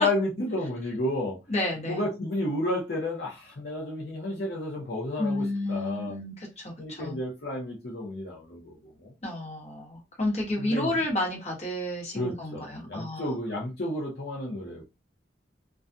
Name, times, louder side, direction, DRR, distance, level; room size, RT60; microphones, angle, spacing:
voice 1, 0.0-1.4 1.9-6.2 6.8-9.1 10.6-10.9 12.1-14.8, left 1 dB, 65° left, 0.7 m, -31 dB
voice 2, 1.5-2.0 5.2-7.2 9.2-13.3, left 1 dB, 40° left, 1.1 m, -31 dB
2.3 x 2.2 x 2.5 m
head